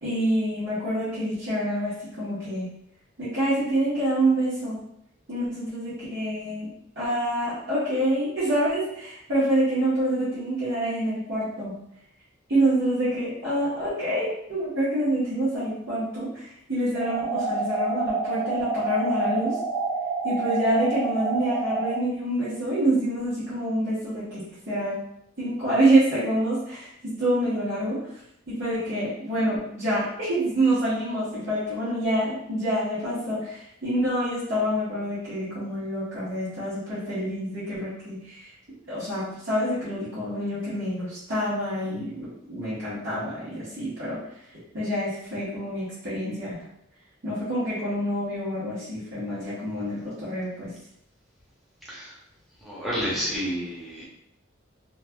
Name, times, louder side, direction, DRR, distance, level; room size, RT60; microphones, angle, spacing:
voice 1, 0.0-2.7 3.2-4.8 5.3-6.7 7.0-11.7 12.5-19.6 20.2-25.0 25.4-28.0 28.5-38.5 38.9-44.2 44.7-46.6 47.2-50.7, right 1 dB, 65° right, -12 dB, 1.1 m, -27 dB
sound 1, 16.9-22.0, right 3 dB, 15° right, 0.3 m, -28 dB
voice 2, 52.6-54.1, equal, ahead, -7 dB, 0.7 m, -30 dB
3.2 x 2.3 x 2.2 m, 0.75 s
head